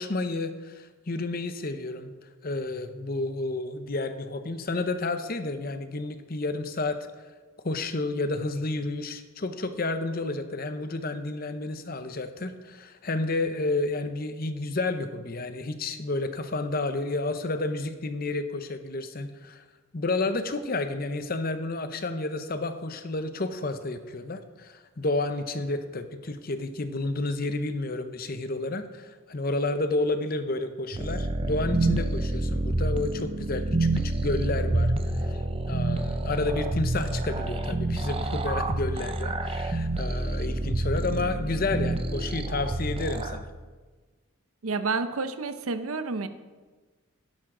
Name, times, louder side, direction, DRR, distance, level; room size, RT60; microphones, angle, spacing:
voice 1, 0.0-2.1 2.4-7.1 7.6-19.6 19.9-35.4 35.7-43.5, left 2 dB, 45° left, 9 dB, 0.7 m, -31 dB
sound 1, 30.9-43.4, right 2 dB, 25° right, 0.5 m, -28 dB
voice 2, 44.6-46.3, right 4 dB, 80° right, 10 dB, 0.8 m, -29 dB
12.5 x 10.5 x 3.8 m, 1.3 s
head